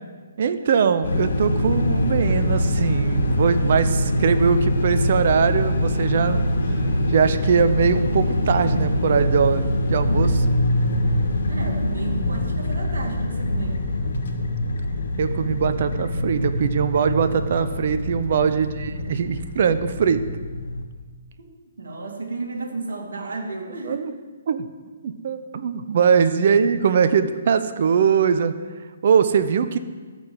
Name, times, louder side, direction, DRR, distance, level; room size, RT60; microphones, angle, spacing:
voice 1, 0.4-6.5 7.1-10.5 15.2-20.3 23.8-24.1 24.5-24.7 25.0-28.5 29.0-29.8, right 6 dB, 55° right, 11 dB, 0.7 m, -21 dB
sound 1, 1.0-20.9, left 1 dB, 70° left, 1.5 m, -24 dB
voice 2, 11.5-13.8 18.3-18.6 21.8-24.1 26.1-26.3, right 3 dB, 70° right, 2 dB, 2.2 m, -32 dB
13.5 x 5.0 x 7.7 m, 1.4 s
figure-of-eight pair, 135°, 0 cm